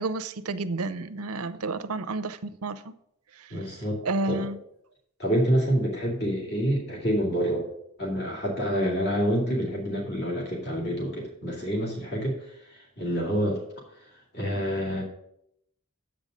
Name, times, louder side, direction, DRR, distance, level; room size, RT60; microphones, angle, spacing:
voice 1, 0.0-2.9 3.3-3.7 4.0-4.6, right 2 dB, 85° right, 0.7 m, -31 dB
voice 2, 3.5-4.4 5.2-7.7 8.0-12.4 13.0-13.6 14.3-15.0, equal, 50° left, 2.7 m, -27 dB
7.9 x 5.3 x 7.6 m
head